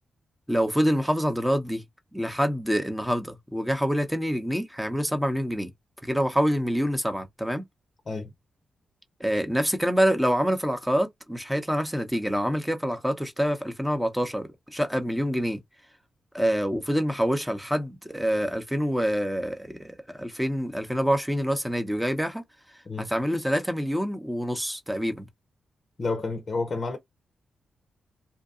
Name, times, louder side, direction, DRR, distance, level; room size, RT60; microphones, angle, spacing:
voice 1, 0.5-1.8 2.1-5.7 6.0-7.6 9.2-15.6 16.3-22.4 23.0-25.3, equal, 5° right, 0.8 m, -26 dB
voice 2, 26.0-27.0, left 3 dB, 45° left, 0.6 m, -30 dB
2.8 x 2.2 x 2.4 m
supercardioid pair, 45°, 0 cm